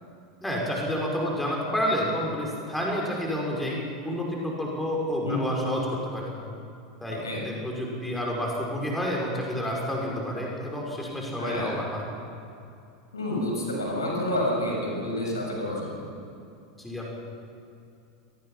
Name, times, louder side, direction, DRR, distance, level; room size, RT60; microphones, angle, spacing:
voice 1, 0.4-3.8 4.0-6.3 7.0-12.0 16.8-17.1, equal, 5° left, -2 dB, 5.6 m, -29 dB
voice 2, 7.1-7.4 11.4-11.7 13.1-16.1, left 1 dB, 75° left, -1 dB, 6.6 m, -29 dB
28.0 x 19.0 x 5.9 m, 2.6 s
figure-of-eight pair, 85°, 2 cm